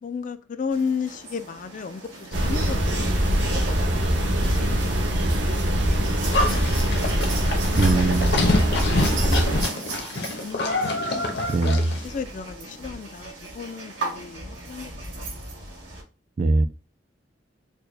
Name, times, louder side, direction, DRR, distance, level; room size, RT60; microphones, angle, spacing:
voice 1, 0.0-4.7 5.2-6.7 7.7-8.9 9.3-10.1 10.4-11.2 11.5-11.7 12.0-14.9, left 5 dB, 45° left, 0.3 m, -35 dB
sound 1, 0.7-16.0, right 3 dB, 85° right, 1.8 m, -37 dB
sound 2, 2.3-9.6, equal, 70° right, 0.8 m, -23 dB
Livestock farm animals working animals, 6.3-12.1, left 2 dB, 60° left, 0.9 m, -27 dB
voice 2, 7.8-8.4 11.5-11.9 16.4-16.7, right 3 dB, 40° right, 0.3 m, -21 dB
4.4 x 2.2 x 3.2 m
head